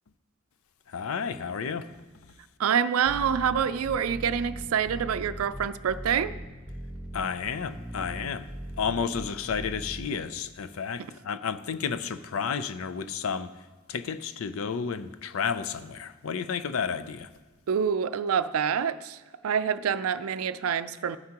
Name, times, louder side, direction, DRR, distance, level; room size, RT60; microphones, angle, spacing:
voice 1, 0.9-2.0 7.1-8.5 8.8-13.5 13.9-17.3, left 6 dB, 80° left, 12 dB, 0.5 m, -31 dB
voice 2, 2.6-6.3 11.0-11.1 17.7-21.2, right 7 dB, 85° right, 13 dB, 0.4 m, -27 dB
sound 1, 3.1-10.1, right 1 dB, 5° right, 1.3 m, -39 dB
12.5 x 9.4 x 2.9 m, 1.3 s
head